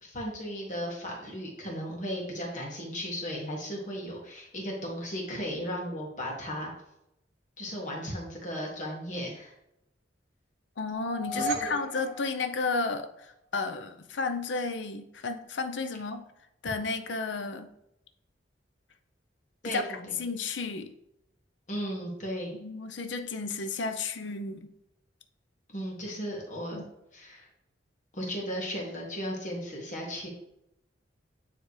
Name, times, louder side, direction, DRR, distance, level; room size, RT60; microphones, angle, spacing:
voice 1, 0.0-6.7 7.6-9.5 11.3-11.8 19.6-20.2 21.7-22.5 25.7-26.8 27.1-27.5 28.1-30.3, equal, 40° left, -2 dB, 1.6 m, -36 dB
voice 2, 10.8-16.2 16.6-17.7 19.6-20.9 22.5-24.7 26.7-26.8, left 4 dB, 70° left, 8 dB, 0.6 m, -32 dB
sound 1, 10.9-13.2, right 1 dB, 45° right, 1.1 m, -36 dB
9.5 x 3.4 x 3.2 m, 0.82 s
head